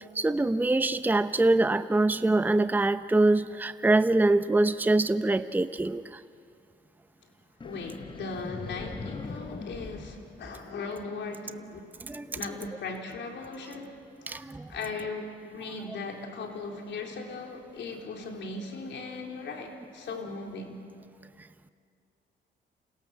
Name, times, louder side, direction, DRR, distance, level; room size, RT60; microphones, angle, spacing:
voice 1, 0.2-6.0 12.0-12.4 14.3-14.7, right 2 dB, 10° right, 12 dB, 0.7 m, -24 dB
voice 2, 7.6-11.9 12.3-14.0 14.3-20.8, left 3 dB, 65° left, 2 dB, 3.9 m, -38 dB
sound 1, 7.6-11.1, left 4 dB, 25° left, 1.0 m, -41 dB
29.0 x 27.0 x 7.2 m, 2.4 s
cardioid pair, 90°, 20 cm